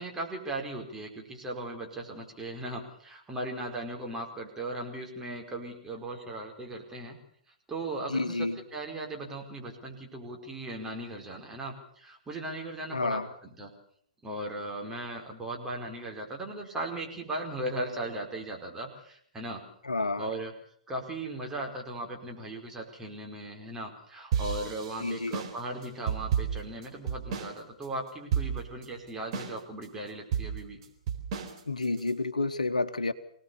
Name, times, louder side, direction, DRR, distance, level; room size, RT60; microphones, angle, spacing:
voice 1, 0.0-7.2 7.7-13.2 13.6-13.7 14.2-19.6 20.2-20.5 20.9-30.8, right 1 dB, 10° right, 0 dB, 4.9 m, -37 dB
voice 2, 8.1-8.6 12.9-13.3 19.8-20.3 25.0-25.4 31.7-33.1, left 3 dB, 80° left, 11 dB, 1.3 m, -30 dB
sound 1, 24.3-27.6 27.8-27.9 28.3-28.8 29.3-29.8 30.3-32.1, right 8 dB, 40° right, 4.0 m, -31 dB
25.0 x 18.5 x 7.1 m, 0.62 s
figure-of-eight pair, 115°, 4 cm